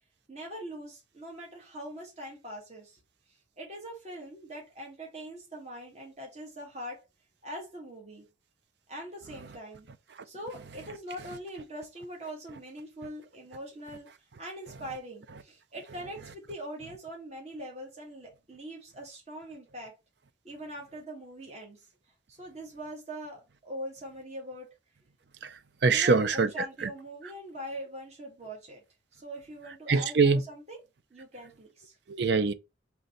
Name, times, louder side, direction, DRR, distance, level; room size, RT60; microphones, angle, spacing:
voice 1, 0.3-3.0 3.6-7.0 7.4-8.2 8.9-9.9 10.2-14.1 14.4-19.9 20.4-21.8 22.3-24.7 25.8-28.8 29.1-30.8 31.1-31.9, equal, 35° right, 1.5 m, -42 dB
voice 2, 25.8-26.9 29.9-30.4 32.1-32.5, right 4 dB, 65° right, 0.5 m, -24 dB
3.9 x 3.3 x 4.1 m
head